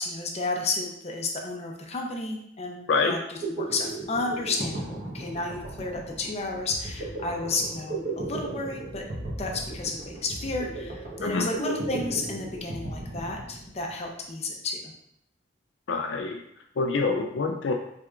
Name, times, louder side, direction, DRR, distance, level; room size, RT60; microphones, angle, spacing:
voice 1, 0.0-9.0 9.4-14.8, left 3 dB, 35° left, 1 dB, 0.7 m, -32 dB
sound 1, 3.4-13.9, right 2 dB, 50° right, 1.1 m, -36 dB
voice 2, 15.9-16.4 16.8-17.7, left 4 dB, 70° left, 3 dB, 0.4 m, -26 dB
5.7 x 3.4 x 2.5 m, 0.75 s
head